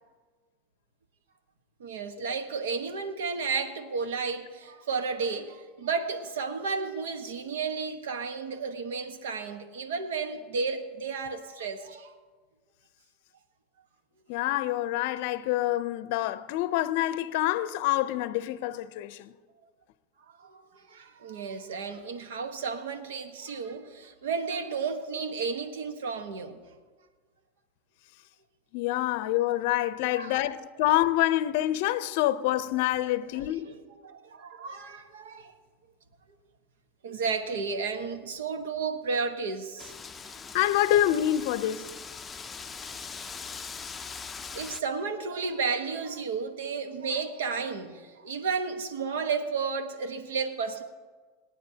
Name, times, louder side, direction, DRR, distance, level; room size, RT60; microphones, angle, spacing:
voice 1, 1.8-12.1 20.3-26.6 30.1-30.4 33.3-33.8 34.0-35.5 37.0-39.9 44.5-50.8, right 5 dB, 85° right, 1.2 m, -33 dB
voice 2, 14.3-19.3 28.7-33.7 40.5-41.9, left 14 dB, 65° left, 0.5 m, -26 dB
Wind, 39.8-44.8, left 5 dB, 20° left, 0.5 m, -41 dB
28.0 x 9.3 x 2.8 m
supercardioid pair, 120°, 0 cm